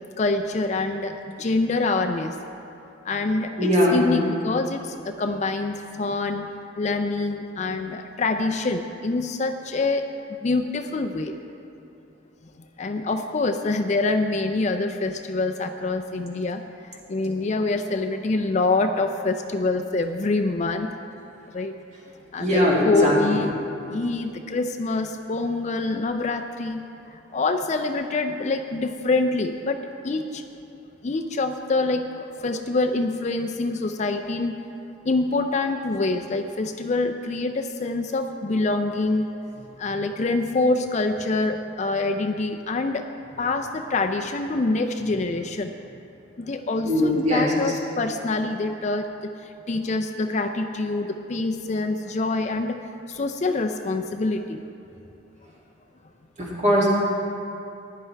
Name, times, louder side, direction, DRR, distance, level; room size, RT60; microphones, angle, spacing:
voice 1, 0.2-2.4 3.0-6.5 6.8-11.4 12.8-20.9 21.5-21.8 22.3-23.6 23.9-30.4 31.0-34.6 35.1-43.1 43.4-45.7 46.4-52.8 53.1-54.6, left 3 dB, 35° left, 6 dB, 0.4 m, -26 dB
voice 2, 3.6-4.1 22.4-23.4 46.8-47.5 56.4-56.9, equal, 35° right, -6 dB, 2.5 m, -20 dB
16.0 x 10.5 x 3.3 m, 2.7 s
head